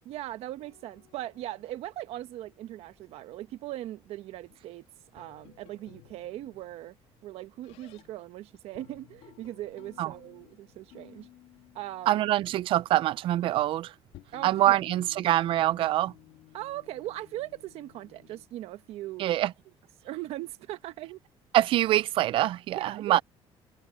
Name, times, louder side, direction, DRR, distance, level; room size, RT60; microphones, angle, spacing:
voice 1, 0.0-4.9 5.1-6.9 7.2-11.3 11.7-12.3 14.3-14.9 16.5-19.3 20.0-21.2 22.7-23.2, right 14 dB, 70° right, 1.2 m, -39 dB
sound 1, 0.6-3.3 4.2-8.3 8.5-13.0 13.6-13.7 14.0-18.5, left 15 dB, 85° left, 2.9 m, -57 dB
voice 2, 12.1-13.9 14.4-16.1 19.2-19.5 21.5-23.2, right 14 dB, 55° right, 0.4 m, -24 dB
cardioid pair, 165°, 11 cm